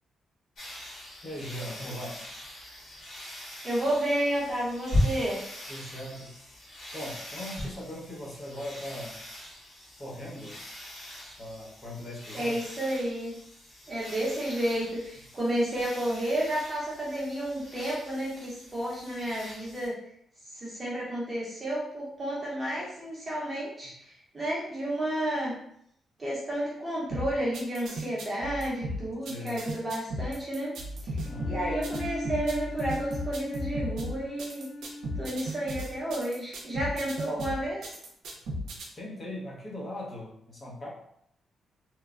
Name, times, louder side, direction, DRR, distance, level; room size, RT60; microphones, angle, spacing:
sound 1, 0.6-19.9, left 1 dB, 65° left, 1.3 m, -39 dB
voice 1, 1.2-2.3 5.7-6.4 6.9-9.2 10.0-10.6 11.4-12.6 29.2-29.6 31.2-31.6 38.9-40.9, left 1 dB, 30° left, -4 dB, 0.8 m, -39 dB
voice 2, 3.6-5.4 12.4-13.3 13.9-19.9 20.5-25.5 26.2-30.7 31.0-31.2 31.4-34.7 35.2-38.0, right 1 dB, 25° right, -6 dB, 0.8 m, -31 dB
sound 2, 27.1-38.8, equal, 80° right, 0.5 m, -35 dB
Bowed string instrument, 31.2-35.9, left 1 dB, 90° left, 0.6 m, -39 dB
3.1 x 2.1 x 2.4 m, 0.72 s
cardioid pair, 110°, 0 cm